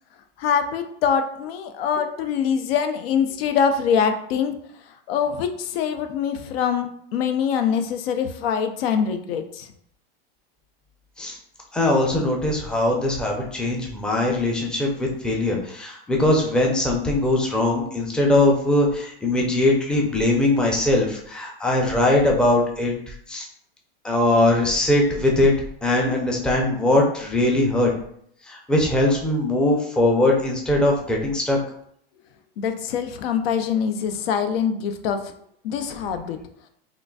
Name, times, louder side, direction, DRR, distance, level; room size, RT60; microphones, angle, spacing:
voice 1, 0.4-4.5 5.1-9.7 32.6-35.2 35.6-36.4, left 7 dB, 75° left, 7 dB, 0.5 m, -24 dB
voice 2, 11.7-23.5 24.0-25.5 25.8-27.9 28.5-31.6, left 1 dB, 5° left, -1 dB, 0.5 m, -21 dB
3.7 x 2.5 x 2.3 m, 0.67 s
supercardioid pair, 120°, 30 cm